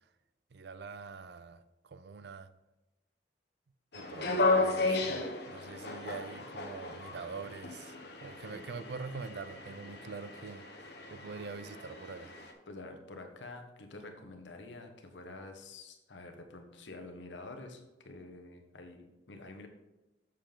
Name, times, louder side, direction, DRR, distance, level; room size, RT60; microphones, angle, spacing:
voice 1, 0.5-2.5 3.9-10.7 11.1-12.3, right 4 dB, 65° right, 0.5 m, -45 dB
New Toronto subway train, 3.9-12.5, left 3 dB, 65° left, 1.1 m, -34 dB
voice 2, 12.7-19.7, left 2 dB, 85° left, 1.2 m, -48 dB
7.4 x 6.8 x 3.8 m
head